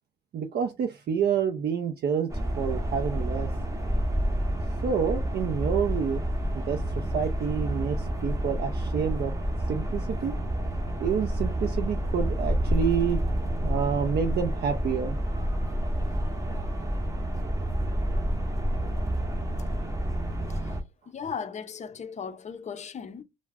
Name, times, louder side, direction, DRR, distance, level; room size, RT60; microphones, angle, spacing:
voice 1, 0.3-3.5 4.8-6.2 6.5-9.3 9.7-10.4 11.0-13.2 13.6-15.2, right 7 dB, 55° right, 0.5 m, -28 dB
sound 1, 2.3-20.8, right 1 dB, 15° right, 0.7 m, -29 dB
voice 2, 21.1-23.2, left 6 dB, 35° left, 0.5 m, -37 dB
2.3 x 2.0 x 3.4 m
cardioid pair, 90°, 20 cm